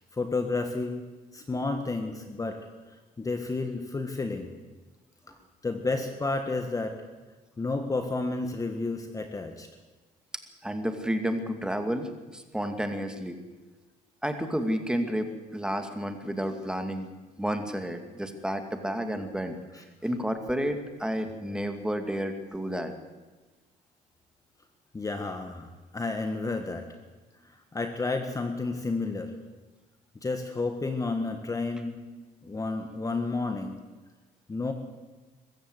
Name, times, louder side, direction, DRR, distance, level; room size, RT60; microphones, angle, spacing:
voice 1, 0.1-1.0 1.3-2.6 3.2-4.5 5.6-6.9 7.6-9.7 19.7-19.8 24.9-26.9 27.5-29.3 30.2-32.0 32.4-33.8 34.5-34.7, left 3 dB, 20° left, 6 dB, 1.6 m, -31 dB
voice 2, 10.6-13.4 14.2-17.1 17.4-19.6 20.0-22.9, equal, 5° right, 6 dB, 2.2 m, -31 dB
22.5 x 14.5 x 8.1 m, 1.3 s
cardioid pair, 110°, 17 cm